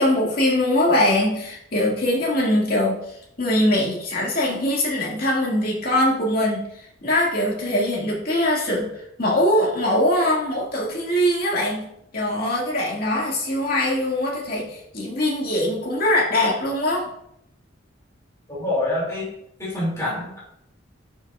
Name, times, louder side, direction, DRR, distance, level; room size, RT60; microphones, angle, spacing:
voice 1, 0.0-3.0 3.4-6.6 7.0-8.9 9.2-17.0, left 1 dB, 50° left, -3 dB, 2.1 m, -22 dB
voice 2, 18.5-19.3 19.6-20.4, left 1 dB, 15° left, -8 dB, 2.6 m, -26 dB
10.5 x 5.9 x 2.5 m, 0.75 s
head